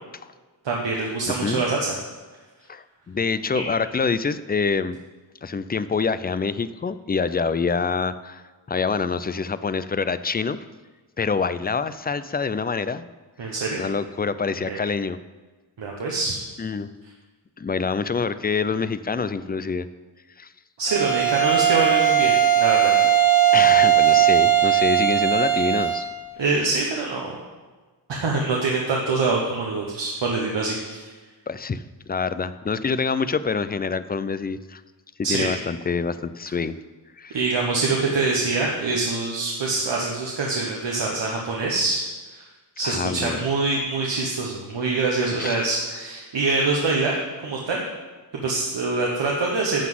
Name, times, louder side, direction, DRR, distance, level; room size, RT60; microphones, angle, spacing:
voice 1, 0.6-1.8 3.5-3.6 13.4-13.8 14.7-14.8 15.8-16.4 20.8-22.9 26.4-27.3 28.1-31.0 35.2-35.5 37.3-42.4 42.8-47.8 48.4-49.8, right 3 dB, 80° right, -1 dB, 1.2 m, -25 dB
voice 2, 1.3-1.6 2.7-5.0 5.4-10.6 11.2-13.1 13.8-15.2 16.6-16.9 17.6-19.9 20.4-20.5 23.5-26.1 31.5-34.8 35.3-36.8 37.2-37.4 42.8-43.4 45.4-45.7, left 5 dB, 25° left, 14 dB, 0.3 m, -26 dB
Bowed string instrument, 20.9-26.1, right 10 dB, 55° right, 2.3 m, -18 dB
11.5 x 4.0 x 7.6 m, 1.3 s
wide cardioid pair, 110°, 43 cm